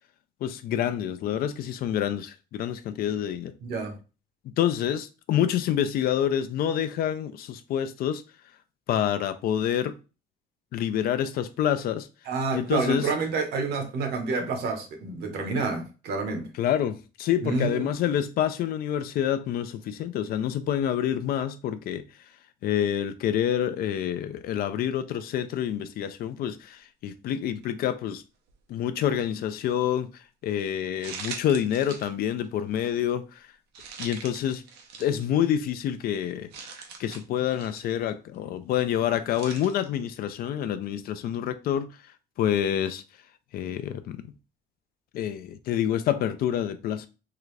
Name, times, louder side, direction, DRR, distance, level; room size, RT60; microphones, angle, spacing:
voice 1, 0.4-3.5 4.5-8.2 8.9-9.9 10.7-12.1 12.5-13.1 16.6-22.0 22.6-28.2 28.7-30.1 30.4-33.3 34.0-34.6 35.0-36.5 37.0-41.9 42.4-43.0 43.5-44.2 45.1-47.1, left 10 dB, 65° left, 0.4 m, -27 dB
voice 2, 3.6-4.0 12.3-16.5 17.4-17.9, right 4 dB, 70° right, 1.1 m, -28 dB
sound 1, 27.6-27.9 28.5-28.6 31.0-32.1 32.4-32.6 33.7-35.3 35.8-35.9 36.5-37.9 39.3-39.9, right 5 dB, 85° right, 0.7 m, -41 dB
3.8 x 2.3 x 3.2 m
cardioid pair, 110°, 17 cm